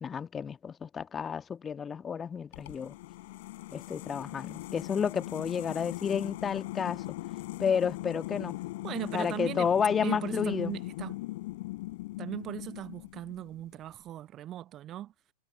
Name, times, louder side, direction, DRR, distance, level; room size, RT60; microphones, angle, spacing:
voice 1, 0.0-2.9 3.7-7.0 7.6-8.6 9.1-10.8, left 7 dB, 20° left, 1.7 m, -31 dB
sound 1, 2.5-13.6, left 19 dB, 50° left, 6.0 m, -39 dB
voice 2, 8.8-9.7 10.0-11.2 12.2-15.1, right 12 dB, 30° right, 0.7 m, -38 dB
figure-of-eight pair, 90°, 0 cm